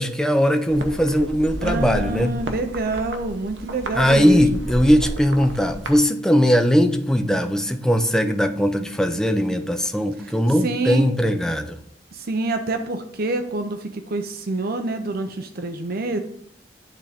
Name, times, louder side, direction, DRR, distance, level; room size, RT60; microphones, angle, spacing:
voice 1, 0.0-2.4 3.9-11.8, equal, 5° left, 7 dB, 0.5 m, -19 dB
sound 1, 0.7-6.0, right 1 dB, 80° right, 0.9 m, -32 dB
voice 2, 1.6-4.6 10.6-11.1 12.1-16.2, right 2 dB, 55° right, 7 dB, 0.6 m, -27 dB
10.0 x 3.7 x 3.4 m, 0.65 s
head